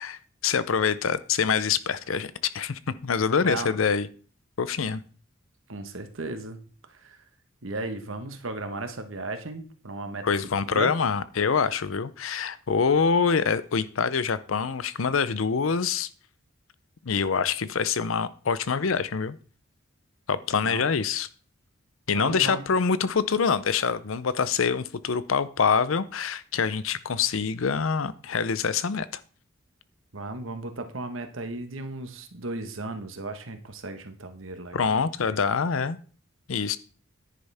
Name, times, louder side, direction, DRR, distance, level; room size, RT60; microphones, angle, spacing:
voice 1, 0.0-4.1 4.6-5.0 10.2-16.1 17.0-19.4 20.3-21.3 22.1-29.1 34.7-36.0 36.5-36.8, left 6 dB, 75° left, 16 dB, 0.6 m, -25 dB
voice 2, 5.7-6.6 6.9-7.2 7.6-10.3 10.6-10.9 20.6-20.9 22.1-22.7 30.1-35.4, right 2 dB, 70° right, 7 dB, 1.3 m, -35 dB
10.0 x 9.7 x 3.5 m, 0.41 s
head